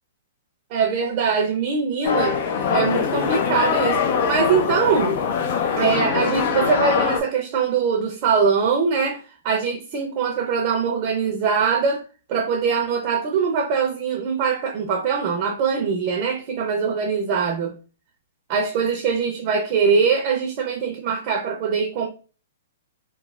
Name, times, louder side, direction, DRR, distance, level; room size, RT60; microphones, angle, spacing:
voice 1, 0.7-4.0 4.3-5.2 5.8-12.0 12.3-17.7 18.5-22.1, right 5 dB, 45° right, 0.6 m, -22 dB
sound 1, 2.0-7.2, left 6 dB, 55° left, 0.5 m, -22 dB
3.1 x 2.1 x 2.4 m
hypercardioid pair, 120°, 0 cm